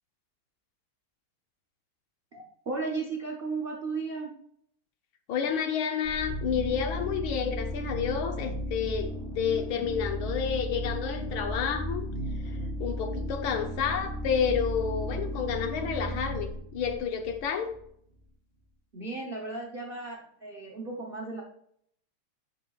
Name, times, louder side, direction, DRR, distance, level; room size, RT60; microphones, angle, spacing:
voice 1, 2.3-4.4 18.9-21.4, right 3 dB, 85° right, -1 dB, 0.5 m, -35 dB
voice 2, 5.3-12.0 12.8-17.7, left 7 dB, 70° left, 5 dB, 1.5 m, -30 dB
sound 1, 6.0-17.8, equal, 15° left, 1.7 m, -35 dB
11.0 x 5.0 x 2.3 m, 0.67 s
omnidirectional pair, 2.4 m